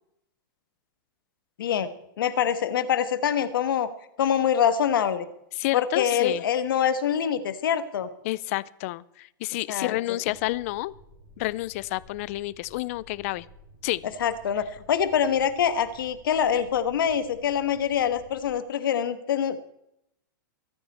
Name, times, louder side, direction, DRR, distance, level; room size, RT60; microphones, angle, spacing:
voice 1, 1.6-1.9 2.2-3.9 4.2-5.3 5.7-8.1 9.7-10.2 14.2-19.6, left 8 dB, 75° left, 12 dB, 1.4 m, -25 dB
voice 2, 5.6-6.4 8.2-10.9 11.4-13.5 13.8-14.0, left 18 dB, 40° left, 21 dB, 0.5 m, -29 dB
sound 1, 10.2-18.5, equal, 35° right, 5.0 m, -53 dB
24.0 x 9.2 x 4.3 m, 0.78 s
supercardioid pair, 160°, 11 cm